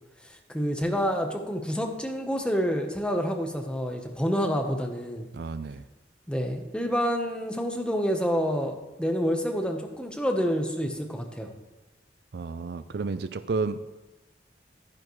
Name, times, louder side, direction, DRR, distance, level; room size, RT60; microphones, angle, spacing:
voice 1, 0.3-5.3 6.3-11.5, equal, 5° left, 3 dB, 1.0 m, -28 dB
voice 2, 5.3-5.9 12.3-13.8, right 4 dB, 65° right, 13 dB, 0.4 m, -31 dB
11.0 x 10.5 x 3.1 m, 1.1 s
head